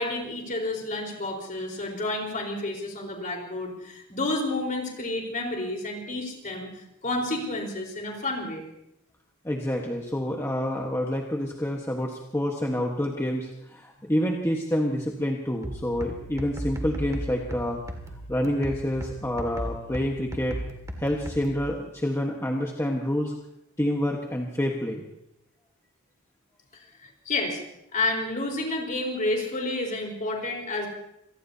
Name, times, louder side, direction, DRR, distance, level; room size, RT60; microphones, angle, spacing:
voice 1, 0.0-6.7 7.0-8.6 27.3-27.6 27.9-30.9, left 2 dB, 40° left, 1 dB, 4.3 m, -30 dB
voice 2, 9.4-17.8 18.3-20.6 21.0-23.3 23.8-25.0, equal, 10° left, 0 dB, 1.3 m, -28 dB
sound 1, 15.6-21.6, right 1 dB, 15° right, 2.1 m, -36 dB
27.0 x 19.0 x 2.8 m, 0.80 s
head